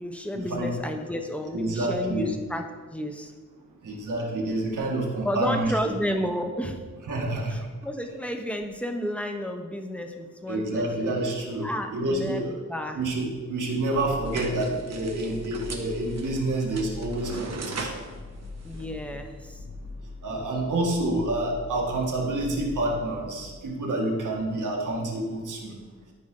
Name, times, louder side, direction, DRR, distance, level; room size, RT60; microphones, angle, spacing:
voice 1, 0.0-3.3 5.2-6.9 7.5-11.1 11.6-13.0 18.6-19.6, equal, 5° left, 4 dB, 1.0 m, -32 dB
voice 2, 1.5-2.3 3.8-5.7 7.1-7.5 10.5-11.7 11.9-12.5 12.9-18.0 20.2-25.8, right 1 dB, 80° right, -1 dB, 1.8 m, -28 dB
sound 1, 13.9-23.6, left 2 dB, 35° left, 1.4 m, -42 dB
sound 2, 14.2-19.5, right 4 dB, 60° right, 1.1 m, -40 dB
12.5 x 5.2 x 3.8 m, 1.4 s
wide cardioid pair, 85°, 30 cm